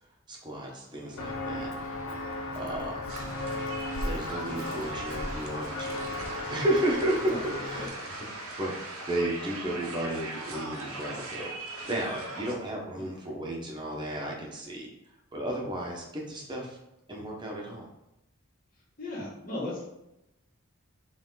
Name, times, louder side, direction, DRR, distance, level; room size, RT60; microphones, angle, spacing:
voice 1, 0.3-1.7 2.1-3.1 4.0-14.9 15.3-16.8 17.1-17.9, right 1 dB, 20° right, -1 dB, 1.2 m, -33 dB
Walk footsteps, 1.2-7.9, left 2 dB, 80° left, 1.0 m, -35 dB
sound 1, 3.1-12.6, right 2 dB, 90° right, 1.2 m, -40 dB
voice 2, 7.3-7.9 13.0-13.1 19.0-19.8, left 2 dB, 40° left, -6 dB, 2.0 m, -37 dB
7.0 x 3.5 x 4.0 m, 0.89 s
head